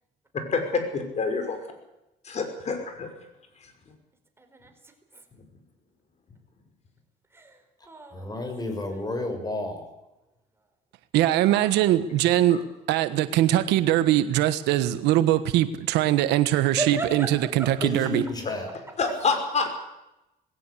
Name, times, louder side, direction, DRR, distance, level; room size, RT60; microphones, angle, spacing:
voice 1, 0.5-1.6 2.2-3.1 3.6-3.7 12.5-12.6 19.0-19.7, left 4 dB, 40° left, 6 dB, 5.8 m, -27 dB
voice 2, 4.4-4.7 5.1-5.2 7.3-9.2 11.1-11.9 16.7-17.9 18.9-19.4, right 2 dB, 15° right, 5 dB, 4.8 m, -37 dB
voice 3, 8.1-9.9 17.8-18.7, left 2 dB, 25° left, 6 dB, 6.6 m, -31 dB
voice 4, 11.1-12.6 12.9-17.3 17.5-18.2, right 13 dB, 90° right, 12 dB, 1.3 m, -22 dB
20.5 x 17.5 x 8.5 m, 0.92 s
cardioid pair, 110°, 17 cm